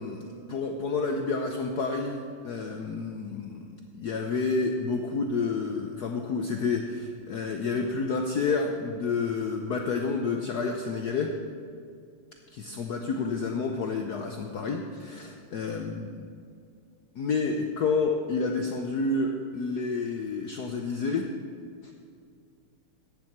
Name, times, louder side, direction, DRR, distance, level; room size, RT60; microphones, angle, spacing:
voice 1, 0.0-2.2 2.4-3.7 3.9-11.3 12.5-16.2 17.2-21.3, left 4 dB, 65° left, 3 dB, 1.0 m, -29 dB
14.5 x 9.6 x 4.6 m, 2.3 s
omnidirectional pair, 2.4 m